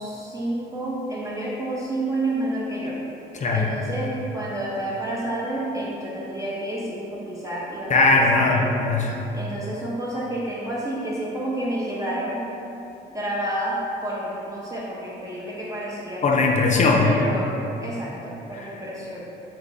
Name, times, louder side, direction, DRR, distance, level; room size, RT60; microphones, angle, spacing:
voice 1, 0.0-3.0 3.5-8.8 9.3-12.5 13.1-16.2 17.0-17.5 17.8-19.2, right 1 dB, 15° right, -6 dB, 0.5 m, -29 dB
voice 2, 7.9-9.1 16.2-17.1 18.6-18.7, left 3 dB, 35° left, -1 dB, 0.4 m, -19 dB
3.2 x 2.2 x 3.9 m, 2.9 s
cardioid pair, 90°, 20 cm